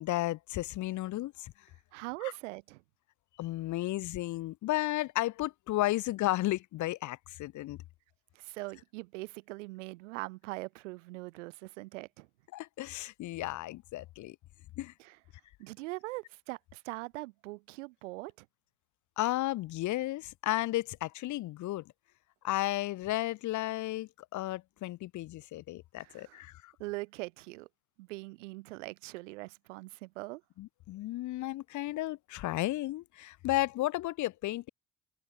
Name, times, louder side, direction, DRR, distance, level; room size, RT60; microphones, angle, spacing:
voice 1, 0.0-1.5 3.4-7.8 12.5-14.4 14.8-14.9 19.2-21.8 22.4-26.7 30.6-34.7, left 16 dB, 55° left, 1.0 m, -33 dB
voice 2, 1.9-2.8 8.3-12.3 15.0-15.2 15.6-18.5 26.0-26.4 26.8-27.7 28.0-30.4, right 22 dB, 85° right, 3.0 m, -42 dB
supercardioid pair, 85°, 36 cm